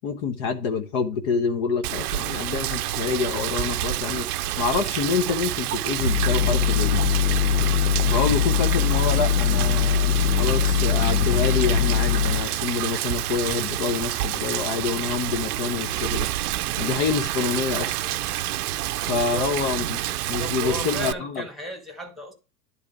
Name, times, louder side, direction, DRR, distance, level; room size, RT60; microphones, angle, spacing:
voice 1, 0.0-4.3 4.6-7.0 8.1-16.3 16.8-18.0 19.1-20.0 20.3-21.4, left 5 dB, 50° left, 1.2 m, -27 dB
Rain, 1.8-21.1, right 14 dB, 65° right, 0.6 m, -28 dB
sound 1, 5.9-12.5, left 8 dB, 90° left, 0.9 m, -22 dB
voice 2, 19.1-19.5 20.2-22.3, left 1 dB, ahead, 1.8 m, -35 dB
9.9 x 3.5 x 6.1 m
hypercardioid pair, 110°, 50 cm